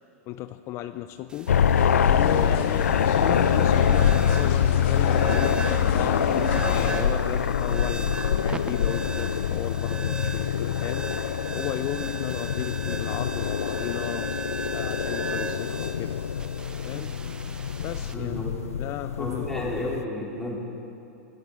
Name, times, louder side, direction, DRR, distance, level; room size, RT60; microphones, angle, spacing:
voice 1, 0.3-1.5 2.1-11.1 11.5-14.3 14.7-16.2 16.8-17.2 17.8-18.5 18.8-19.7, left 13 dB, 35° left, 11 dB, 0.4 m, -35 dB
sound 1, 1.3-18.1, right 3 dB, 10° right, 0.7 m, -38 dB
sound 2, 1.5-20.0, left 8 dB, 90° left, 0.5 m, -25 dB
sound 3, 1.8-7.0, left 6 dB, 55° left, 1.6 m, -30 dB
voice 2, 18.1-18.5 19.2-20.6, left 1 dB, 5° left, -4 dB, 3.1 m, -32 dB
22.0 x 14.5 x 3.8 m, 2.8 s
hypercardioid pair, 120°, 8 cm